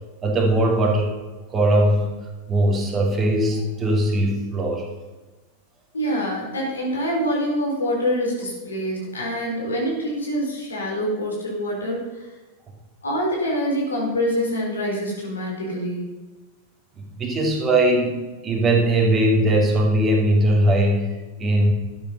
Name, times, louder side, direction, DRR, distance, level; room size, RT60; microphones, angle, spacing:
voice 1, 0.2-1.1 1.5-2.1 2.5-4.9 17.0-18.2 18.4-21.7, right 1 dB, 20° right, 1 dB, 2.9 m, -20 dB
voice 2, 5.9-12.1 13.0-16.1, equal, 75° left, -2 dB, 4.4 m, -25 dB
12.0 x 9.3 x 5.6 m, 1.2 s
figure-of-eight pair, 90°, 0 cm